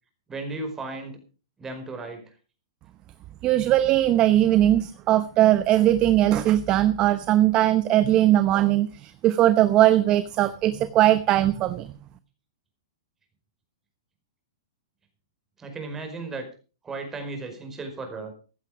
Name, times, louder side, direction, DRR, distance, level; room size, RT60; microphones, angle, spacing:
voice 1, 0.3-1.2 1.6-2.2 15.6-16.5 16.8-18.3, right 3 dB, 15° right, 5 dB, 4.9 m, -35 dB
voice 2, 3.4-11.9, right 13 dB, 30° right, 13 dB, 0.8 m, -20 dB
15.5 x 11.5 x 5.0 m, 0.37 s
hypercardioid pair, 130°, 3 cm